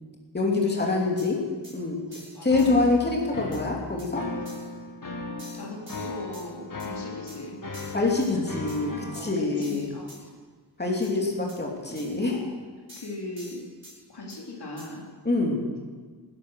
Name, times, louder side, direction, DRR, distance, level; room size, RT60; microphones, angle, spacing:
voice 1, 0.3-1.4 1.7-2.0 2.4-4.3 7.9-9.9 10.8-12.4 15.2-15.6, left 3 dB, 25° left, -1 dB, 2.8 m, -25 dB
Arturia Acid DB-A Cym, 1.2-1.3 1.6-1.8 2.1-2.7 3.5-3.6 4.0-4.1 4.5-4.7 5.4-6.5 6.8-6.9 7.3-7.4 7.7-8.3 8.7-8.8 9.1-9.3 9.6-10.2 11.0-11.1 11.5-11.6 12.0-12.2 12.9-14.0 14.3-14.4 14.8-14.9, equal, 30° right, 5.5 m, -47 dB
voice 2, 2.0-2.5 5.3-8.0 9.1-10.3 12.3-12.5 13.0-13.6 14.1-15.0, left 2 dB, 70° left, -1 dB, 3.2 m, -39 dB
sound 1, 2.5-9.3, left 2 dB, 50° left, 1.8 m, -37 dB
19.0 x 11.0 x 6.4 m, 1.5 s
wide cardioid pair, 105°, 41 cm